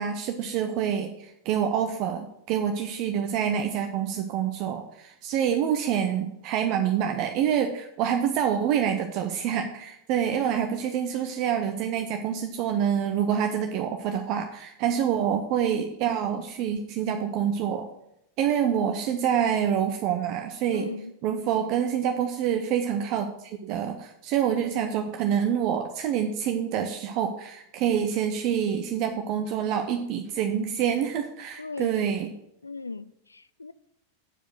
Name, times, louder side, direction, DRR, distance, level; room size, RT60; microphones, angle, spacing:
voice 1, 0.0-17.9 18.4-20.9 21.2-32.3, right 8 dB, 40° right, 0.7 m, -27 dB
voice 2, 20.7-21.1 31.6-31.9 32.6-33.7, left 3 dB, 80° left, 0.4 m, -38 dB
8.8 x 5.0 x 6.4 m
figure-of-eight pair, 90°, 0 cm